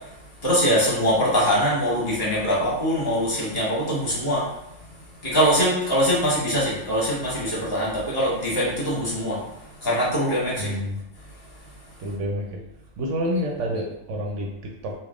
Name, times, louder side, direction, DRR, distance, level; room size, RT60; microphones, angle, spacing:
voice 1, 0.4-4.5 5.2-9.4 9.8-10.7, equal, 45° left, -7 dB, 1.5 m, -23 dB
voice 2, 10.6-11.0 12.0-12.6 13.0-14.9, equal, 70° right, 0 dB, 0.9 m, -28 dB
3.4 x 2.4 x 3.5 m, 0.85 s
omnidirectional pair, 1.4 m